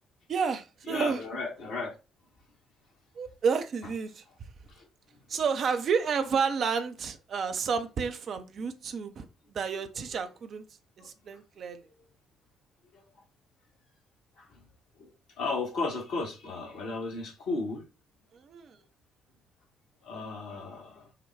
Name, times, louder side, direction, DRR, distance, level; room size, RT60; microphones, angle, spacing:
voice 1, 0.3-1.2 3.2-4.2 5.3-10.6 11.0-11.8 18.3-18.8, right 6 dB, 50° right, 0.6 m, -30 dB
voice 2, 0.9-1.9 4.7-4.8 10.1-10.2 11.0-11.1 12.9-13.0 14.4-14.6 15.0-15.1 15.4-17.8 20.0-21.1, left 3 dB, 65° left, 1.4 m, -35 dB
5.6 x 2.2 x 3.4 m
figure-of-eight pair, 45°, 0 cm